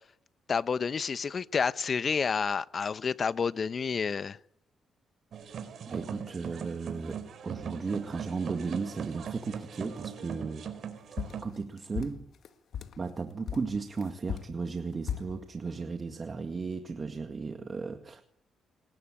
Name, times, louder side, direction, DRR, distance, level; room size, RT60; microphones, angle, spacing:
voice 1, 0.5-4.4, left 6 dB, 45° left, 0.9 m, -29 dB
sound 1, 5.3-11.4, right 8 dB, 65° right, 4.2 m, -40 dB
voice 2, 5.9-10.7 11.4-12.3 13.0-18.2, right 4 dB, 40° right, 1.9 m, -35 dB
sound 2, 11.2-13.0 13.5-15.4, left 8 dB, 70° left, 1.8 m, -37 dB
25.5 x 20.0 x 8.9 m
cardioid pair, 90°, 0 cm